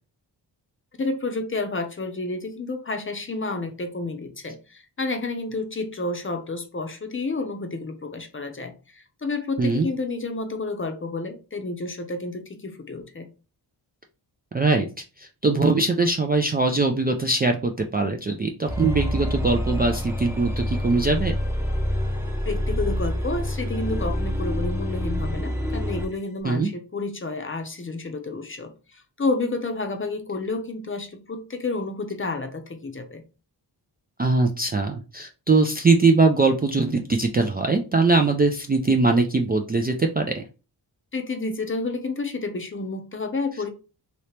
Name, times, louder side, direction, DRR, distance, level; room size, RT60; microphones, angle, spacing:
voice 1, 1.0-13.3 22.4-33.2 41.1-43.7, left 3 dB, 30° left, 0.7 m, -30 dB
voice 2, 14.5-14.9 15.2-21.3 26.4-26.7 34.2-40.4, right 3 dB, 25° right, 0.3 m, -21 dB
sound 1, 18.7-26.1, equal, 5° right, 0.7 m, -27 dB
2.9 x 2.8 x 3.2 m
cardioid pair, 65°, 43 cm